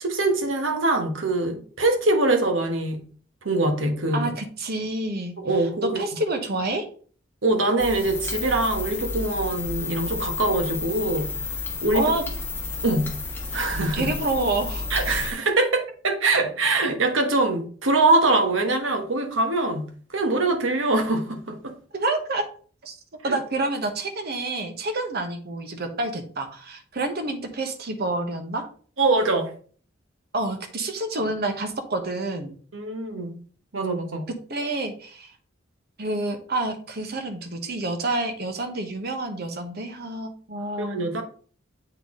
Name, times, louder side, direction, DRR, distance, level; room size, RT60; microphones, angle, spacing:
voice 1, 0.0-3.0 3.4-4.3 5.4-6.0 7.4-11.3 11.8-12.1 12.8-13.2 13.5-14.1 14.9-21.7 23.3-23.4 29.0-29.5 32.7-33.4 33.7-34.2 40.8-41.2, right 2 dB, 85° right, 5 dB, 1.2 m, -23 dB
voice 2, 4.1-5.3 5.8-6.8 11.9-12.2 13.9-14.9 21.9-22.4 22.8-23.0 23.2-28.7 30.3-32.6 34.5-35.3 36.0-41.0, right 2 dB, 55° right, 7 dB, 1.1 m, -28 dB
sound 1, 7.8-15.3, left 3 dB, 10° left, 1.2 m, -31 dB
7.8 x 4.1 x 3.7 m, 0.44 s
head